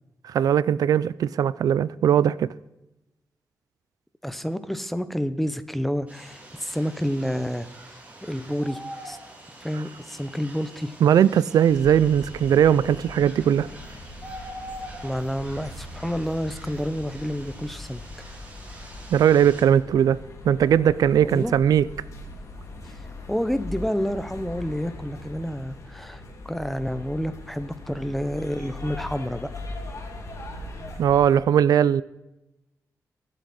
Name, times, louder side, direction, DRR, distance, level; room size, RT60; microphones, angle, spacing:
voice 1, 0.2-2.5 11.0-13.7 19.1-20.2 20.4-21.9 31.0-32.0, right 9 dB, 85° right, 0.4 m, -19 dB
voice 2, 4.2-7.7 8.2-8.8 9.0-9.2 9.6-11.0 15.0-18.0 21.2-21.6 23.3-26.2 26.5-29.5, equal, 5° left, 0.8 m, -29 dB
sound 1, 6.1-19.6, right 1 dB, 25° right, 3.3 m, -44 dB
sound 2, 11.7-31.4, left 2 dB, 55° left, 3.0 m, -40 dB
23.5 x 8.1 x 4.3 m
wide cardioid pair, 125°, 6 cm